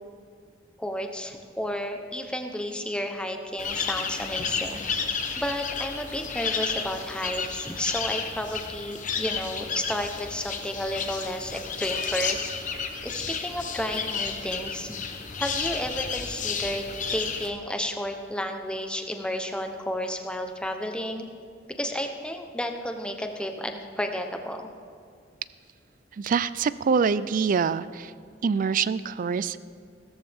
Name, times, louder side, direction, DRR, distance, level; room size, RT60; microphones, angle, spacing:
voice 1, 0.8-4.8 5.4-12.5 13.0-14.9 15.4-21.3 21.8-24.7, equal, 5° left, 5 dB, 0.8 m, -32 dB
sound 1, 3.6-17.5, left 6 dB, 40° left, 0.9 m, -32 dB
voice 2, 26.2-28.1 28.4-29.6, right 5 dB, 45° right, 17 dB, 0.3 m, -25 dB
16.5 x 13.5 x 3.5 m, 2.1 s
head